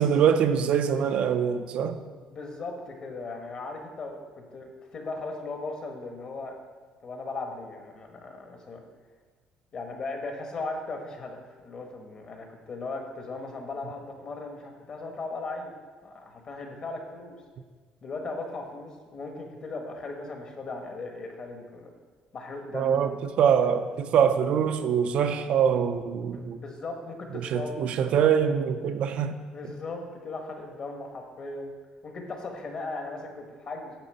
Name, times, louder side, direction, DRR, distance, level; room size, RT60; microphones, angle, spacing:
voice 1, 0.0-2.0 22.7-26.6 27.3-29.3, right 8 dB, 50° right, 8 dB, 0.4 m, -24 dB
voice 2, 2.1-6.6 7.0-8.9 9.7-15.7 16.0-17.4 18.0-21.9 22.3-23.1 26.3-27.7 29.5-31.7 32.0-33.9, left 3 dB, 35° left, 3 dB, 1.1 m, -37 dB
9.6 x 3.8 x 6.5 m, 1.4 s
cardioid pair, 165°, 2 cm